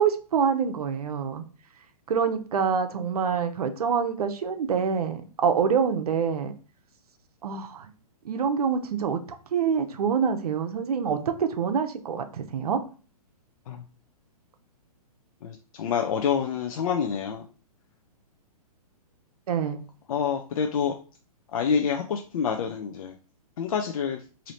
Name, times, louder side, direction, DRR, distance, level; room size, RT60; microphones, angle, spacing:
voice 1, 0.0-1.4 2.1-6.5 7.4-7.9 8.2-9.2 9.5-12.8 19.5-19.8, right 6 dB, 75° right, 8 dB, 0.7 m, -26 dB
voice 2, 15.4-17.5 20.1-21.0 21.5-23.1 23.6-24.2, left 7 dB, 65° left, 3 dB, 0.6 m, -27 dB
3.2 x 2.8 x 4.0 m, 0.37 s
hypercardioid pair, 135°, 20 cm